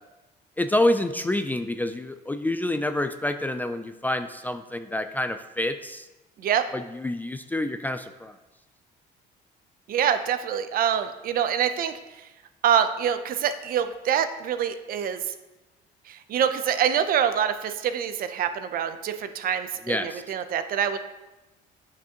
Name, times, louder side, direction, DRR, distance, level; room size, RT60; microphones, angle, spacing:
voice 1, 0.6-6.1 6.7-8.3 19.9-20.2, left 1 dB, 10° left, 9 dB, 0.3 m, -27 dB
voice 2, 9.9-11.9 12.6-15.3 16.1-21.0, right 8 dB, 60° right, 10 dB, 0.6 m, -25 dB
9.1 x 5.8 x 2.9 m, 1.1 s
cardioid pair, 110°, 17 cm